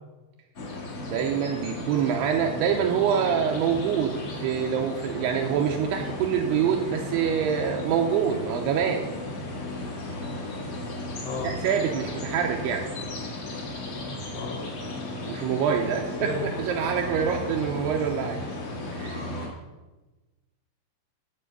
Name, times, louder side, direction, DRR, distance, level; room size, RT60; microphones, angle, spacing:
sound 1, 0.5-19.5, left 2 dB, 60° left, 1.4 m, -35 dB
voice 1, 1.0-9.1 11.4-12.8 15.3-18.4 19.0-19.2, right 7 dB, 85° right, 1 dB, 2.4 m, -26 dB
voice 2, 16.2-16.5, left 4 dB, 85° left, -3 dB, 4.0 m, -33 dB
12.5 x 4.7 x 8.0 m, 1.2 s
omnidirectional pair, 5.5 m